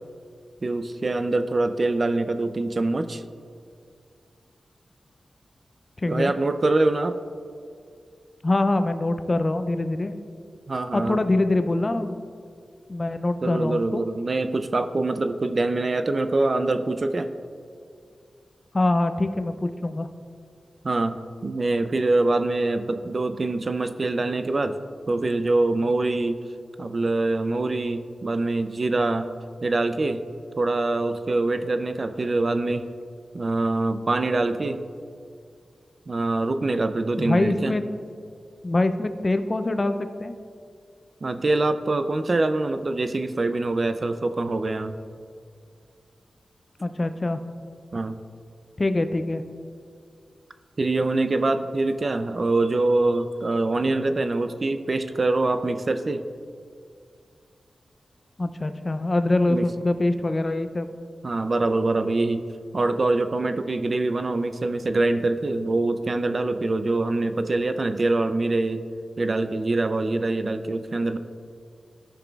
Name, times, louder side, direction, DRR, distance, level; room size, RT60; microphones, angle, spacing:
voice 1, 0.6-3.2 6.1-7.2 10.7-11.2 13.4-17.3 20.8-26.4 26.8-29.3 29.6-30.2 30.6-32.9 33.3-34.8 36.1-37.7 41.2-45.0 47.9-48.1 50.8-56.3 59.5-59.7 61.2-62.4 62.7-68.8 69.2-71.2, right 2 dB, 45° right, 10 dB, 0.4 m, -24 dB
voice 2, 6.0-6.3 8.4-10.1 10.9-12.2 12.9-14.0 18.7-20.1 37.2-37.8 38.6-39.9 40.2-40.3 46.8-47.4 48.8-49.4 58.4-60.9, left 2 dB, 35° left, 9 dB, 0.4 m, -24 dB
13.5 x 5.9 x 2.4 m, 2.2 s
wide cardioid pair, 85°, 0 cm